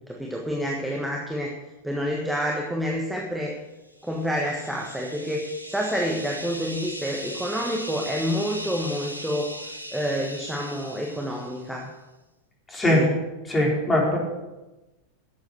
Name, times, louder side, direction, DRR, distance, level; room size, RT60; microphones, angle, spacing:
voice 1, 0.1-1.5 1.8-3.6 4.0-9.5 9.9-11.9 12.8-13.1, equal, 5° right, -1 dB, 1.5 m, -28 dB
sound 1, 4.0-11.8, equal, 90° left, 1.1 m, -39 dB
voice 2, 12.7-13.0 13.4-14.2, left 1 dB, 15° left, -3 dB, 4.0 m, -21 dB
11.5 x 8.0 x 6.8 m, 1.1 s
figure-of-eight pair, 90°, 0 cm